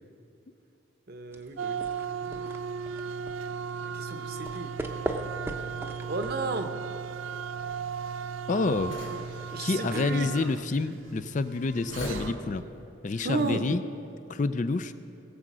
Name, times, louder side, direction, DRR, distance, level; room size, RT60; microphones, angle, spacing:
voice 1, 1.1-1.8 3.8-4.7 6.1-6.7 8.6-9.2 9.5-10.4 13.2-13.6, right 3 dB, 50° right, 7 dB, 0.8 m, -33 dB
sound 1, 1.3-6.9, right 1 dB, 10° right, 0.7 m, -39 dB
sound 2, 1.6-12.5, right 6 dB, 80° right, 0.3 m, -36 dB
sound 3, 5.1-12.8, left 1 dB, 70° left, 2.9 m, -44 dB
voice 2, 8.5-9.0 9.6-12.6 13.0-13.8 14.3-14.9, left 3 dB, 40° left, 12 dB, 0.4 m, -28 dB
20.0 x 7.6 x 6.1 m, 2.8 s
head